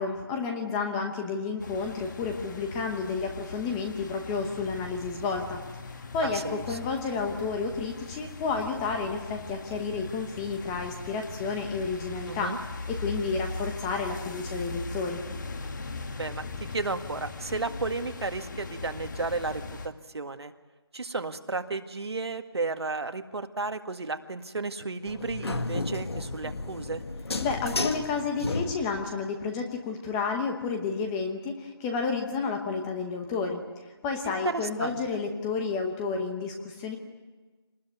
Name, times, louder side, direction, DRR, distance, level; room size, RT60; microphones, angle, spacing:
voice 1, 0.0-5.6 6.1-12.5 12.9-15.2 27.4-33.6 34.0-37.0, left 4 dB, 10° left, 4 dB, 1.0 m, -31 dB
sound 1, 1.6-19.9, left 3 dB, 45° left, 1.9 m, -39 dB
voice 2, 6.2-6.8 12.3-12.6 16.2-16.4 16.7-20.5 20.9-27.0 34.2-35.0, right 3 dB, 75° right, 7 dB, 1.9 m, -33 dB
sound 2, 25.1-29.1, left 3 dB, 70° left, 1.9 m, -33 dB
26.0 x 20.0 x 9.4 m, 1.3 s
figure-of-eight pair, 170°, 14 cm